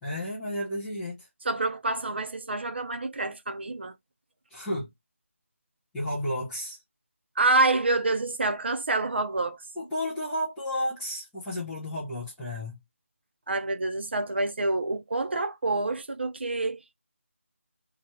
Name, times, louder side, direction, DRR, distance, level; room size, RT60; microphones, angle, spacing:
voice 1, 0.0-1.3 4.5-4.9 5.9-6.8 9.8-12.8, left 1 dB, ahead, 0.3 m, -32 dB
voice 2, 1.4-3.9 7.4-9.6 13.5-16.9, right 2 dB, 50° right, 0.5 m, -27 dB
2.7 x 2.3 x 2.9 m
figure-of-eight pair, 170°, 8 cm